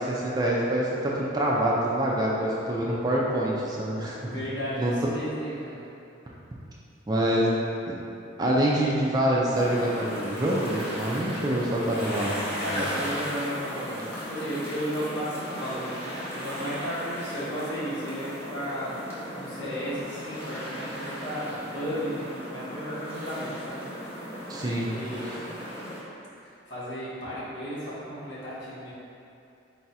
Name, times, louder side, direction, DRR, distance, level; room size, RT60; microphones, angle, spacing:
voice 1, 0.0-4.3 4.8-4.9 7.1-7.5 7.9-8.0 8.4-12.4 12.7-12.9 24.5-24.9 25.2-25.4, right 1 dB, 20° right, -4 dB, 0.4 m, -26 dB
voice 2, 4.2-5.9 12.6-19.0 19.3-23.8 24.8-25.4 26.7-28.9, equal, 65° left, -10 dB, 1.3 m, -34 dB
sound 1, 9.5-26.0, equal, 15° left, 0.8 m, -36 dB
4.0 x 2.4 x 4.1 m, 2.6 s
head